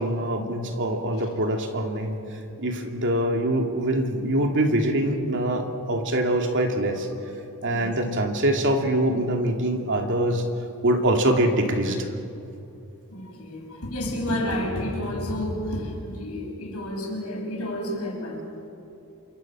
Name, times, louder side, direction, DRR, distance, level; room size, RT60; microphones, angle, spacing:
voice 1, 0.0-2.2 2.6-7.1 7.6-10.5 10.8-12.1, right 1 dB, 55° right, 3 dB, 2.6 m, -24 dB
voice 2, 13.1-18.5, left 1 dB, 75° left, 0 dB, 6.3 m, -30 dB
27.5 x 24.5 x 6.2 m, 2.7 s
head